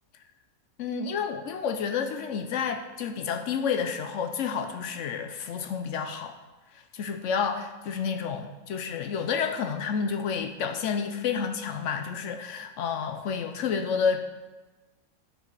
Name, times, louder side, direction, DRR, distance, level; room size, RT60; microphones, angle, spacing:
voice 1, 0.8-6.4 6.9-14.3, left 6 dB, 65° left, 6 dB, 0.8 m, -30 dB
9.9 x 4.5 x 4.6 m, 1.2 s
omnidirectional pair, 1.5 m